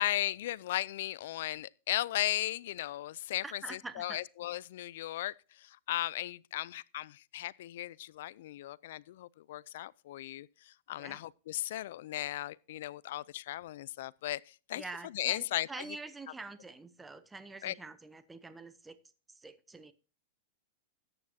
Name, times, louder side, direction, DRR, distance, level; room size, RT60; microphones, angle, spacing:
voice 1, 0.0-5.3 5.6-10.5 10.9-14.8 15.1-15.7 17.6-17.7, left 14 dB, 65° left, 0.4 m, -36 dB
voice 2, 3.4-4.2 11.0-11.2 14.7-19.0 19.4-19.9, right 3 dB, 10° right, 0.8 m, -46 dB
14.0 x 9.7 x 2.8 m
supercardioid pair, 145°, 0 cm